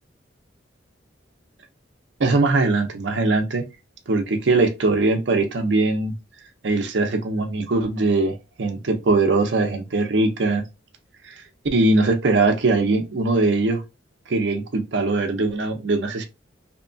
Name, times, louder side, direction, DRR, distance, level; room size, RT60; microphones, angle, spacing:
voice 1, 2.2-3.6 4.1-6.1 6.6-10.6 11.2-11.4 11.7-13.8 14.3-16.3, right 3 dB, 65° right, 0.6 m, -21 dB
2.8 x 2.2 x 2.6 m
head